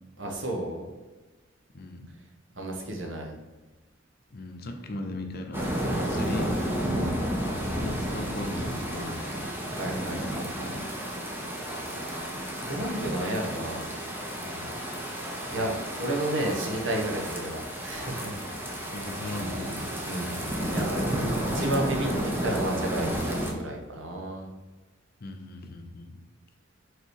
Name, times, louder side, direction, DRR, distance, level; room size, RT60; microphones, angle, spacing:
voice 1, 0.2-0.9 2.6-3.3 9.7-10.7 12.7-13.9 15.5-18.4 19.2-24.5, right 1 dB, 80° right, 1 dB, 1.2 m, -32 dB
voice 2, 1.7-2.1 4.3-6.5 7.6-9.4 14.4-14.8 18.9-20.0 25.2-26.2, left 2 dB, 55° left, 5 dB, 0.7 m, -38 dB
sound 1, 5.5-23.5, equal, 10° right, 0.8 m, -31 dB
5.4 x 4.1 x 4.7 m, 1.2 s
head